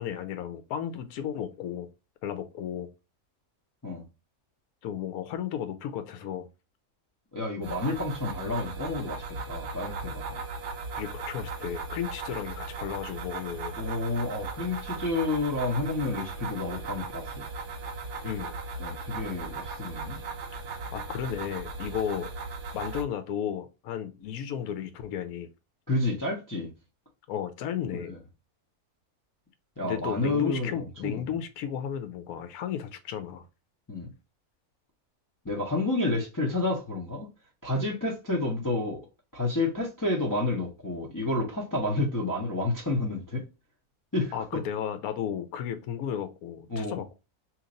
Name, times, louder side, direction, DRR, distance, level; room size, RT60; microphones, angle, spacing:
voice 1, 0.0-1.9 2.2-2.9 4.8-6.5 11.0-13.7 18.2-18.6 20.9-22.3 22.7-25.5 27.3-28.1 29.8-33.4 44.3-47.1, left 9 dB, 80° left, 1.1 m, -34 dB
voice 2, 7.3-10.4 13.8-17.4 18.8-20.2 25.9-26.7 27.9-28.2 29.8-31.3 33.9-34.1 35.4-37.3 37.6-39.0 39.3-43.4 44.1-44.6 46.7-47.0, left 2 dB, 20° left, 0.5 m, -30 dB
sound 1, 7.6-23.0, right 4 dB, 60° right, 0.9 m, -37 dB
3.0 x 2.5 x 3.8 m
omnidirectional pair, 1.6 m